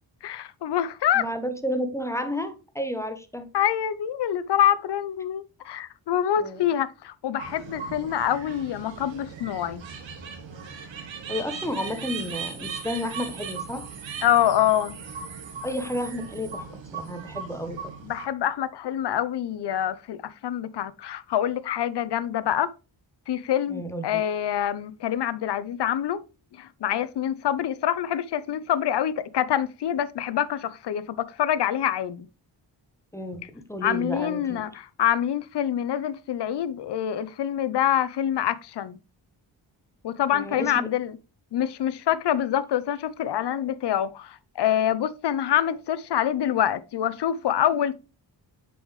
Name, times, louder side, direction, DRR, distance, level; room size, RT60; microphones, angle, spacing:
voice 1, 0.2-1.2 3.5-9.8 14.2-15.0 18.0-22.7 23.3-26.2 26.5-32.3 33.8-39.0 40.0-41.1 41.5-47.9, left 10 dB, 65° left, 0.7 m, -26 dB
voice 2, 1.1-3.5 6.4-6.7 11.3-13.9 15.6-17.9 23.7-24.2 33.1-34.7 40.3-40.9, equal, 5° left, 0.9 m, -32 dB
sound 1, 7.4-18.3, right 5 dB, 85° right, 1.5 m, -38 dB
6.9 x 5.5 x 3.1 m
cardioid pair, 100°, 45 cm